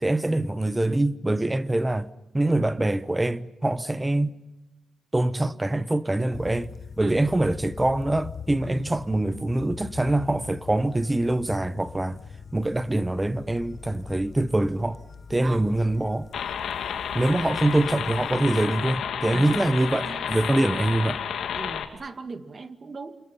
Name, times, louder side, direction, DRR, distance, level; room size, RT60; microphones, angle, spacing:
voice 1, 0.0-2.1 2.3-4.3 5.1-12.2 12.5-15.0 15.3-16.3 17.1-21.2, right 1 dB, 10° right, 1.0 m, -24 dB
sound 1, 6.3-18.4, left 6 dB, 40° left, 1.2 m, -42 dB
sound 2, 16.3-21.9, left 8 dB, 80° left, 2.8 m, -31 dB
voice 2, 17.2-17.6 19.3-20.3 21.6-23.2, right 3 dB, 35° right, 2.1 m, -38 dB
29.0 x 28.5 x 5.7 m
wide cardioid pair, 130°, 0 cm